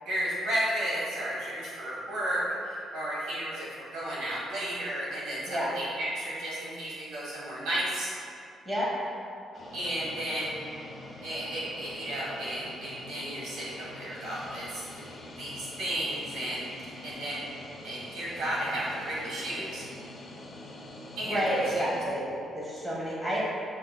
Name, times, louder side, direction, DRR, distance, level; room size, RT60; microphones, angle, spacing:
voice 1, 0.0-8.1 9.7-10.6 11.2-15.0 15.4-17.4 17.8-19.8 21.2-21.9, right 1 dB, 85° right, -7 dB, 1.3 m, -33 dB
sound 1, 9.5-22.1, left 1 dB, 40° left, 0.9 m, -45 dB
voice 2, 21.2-23.4, equal, 15° right, -6 dB, 1.2 m, -30 dB
7.5 x 2.7 x 2.3 m, 2.6 s
cardioid pair, 90°, 0 cm